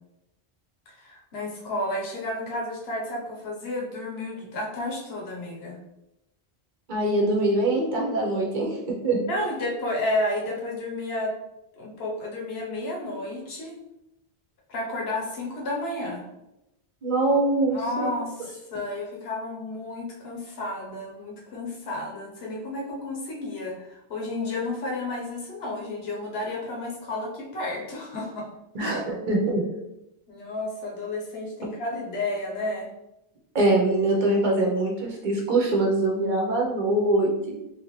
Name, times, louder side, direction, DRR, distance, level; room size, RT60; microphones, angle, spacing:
voice 1, 0.9-5.8 9.3-11.3 11.8-13.7 14.7-16.3 17.7-28.5 28.8-29.0 30.3-32.9, left 2 dB, 75° left, -1 dB, 1.1 m, -31 dB
voice 2, 6.9-9.2 17.0-18.1 28.7-29.6 33.5-37.5, right 2 dB, 50° right, -1 dB, 0.8 m, -23 dB
3.3 x 2.5 x 3.0 m, 0.89 s
omnidirectional pair, 1.1 m